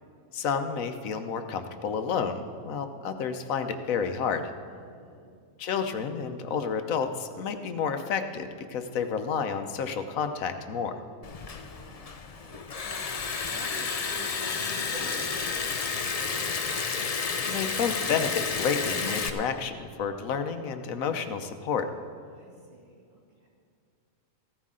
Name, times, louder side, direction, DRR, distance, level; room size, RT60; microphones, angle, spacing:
voice 1, 0.3-4.5 5.6-10.9 17.5-21.9, left 6 dB, 80° left, 8 dB, 1.2 m, -30 dB
voice 2, 4.7-5.3 11.5-13.0 13.4-16.5 22.3-23.5, right 1 dB, 70° right, -3 dB, 2.7 m, -48 dB
Liquid, 11.2-19.3, left 5 dB, 45° left, 0.5 m, -31 dB
15.5 x 13.5 x 3.7 m, 2.3 s
omnidirectional pair, 1.4 m